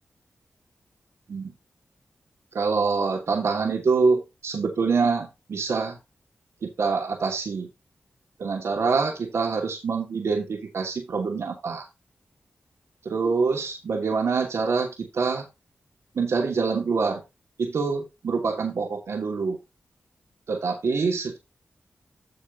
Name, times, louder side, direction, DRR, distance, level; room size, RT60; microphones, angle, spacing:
voice 1, 2.5-6.0 6.8-7.7 8.4-11.8 13.0-14.9 15.1-15.5 16.2-17.2 17.6-19.6 20.5-21.4, right 4 dB, 80° right, 1 dB, 2.8 m, -25 dB
9.5 x 7.3 x 2.8 m, 0.23 s
cardioid pair, 45°, 5 cm